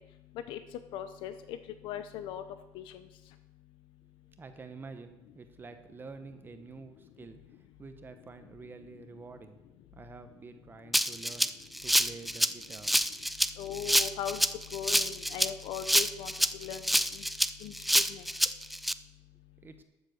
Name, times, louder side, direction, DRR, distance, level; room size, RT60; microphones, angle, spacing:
voice 1, 0.9-1.6 1.8-2.4 2.7-3.1 13.6-14.4 14.7-16.3 16.6-17.2 17.6-18.2, left 10 dB, 80° left, 10 dB, 0.7 m, -39 dB
voice 2, 4.4-9.6 9.9-11.5 11.8-13.0 19.6-19.8, right 4 dB, 25° right, 8 dB, 0.9 m, -48 dB
Rattle (instrument), 10.9-18.9, equal, ahead, 0.3 m, -27 dB
13.0 x 7.1 x 6.5 m, 0.93 s
cardioid pair, 140°, 9 cm